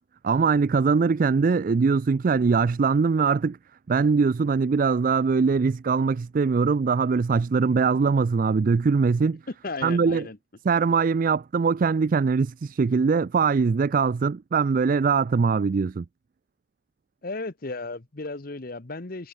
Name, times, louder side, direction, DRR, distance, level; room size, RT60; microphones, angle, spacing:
voice 1, 0.2-3.6 3.9-9.4 9.8-10.2 10.6-16.1, right 5 dB, 40° right, 0.3 m, -22 dB
voice 2, 9.5-10.4 17.2-19.3, left 3 dB, 45° left, 1.0 m, -35 dB
head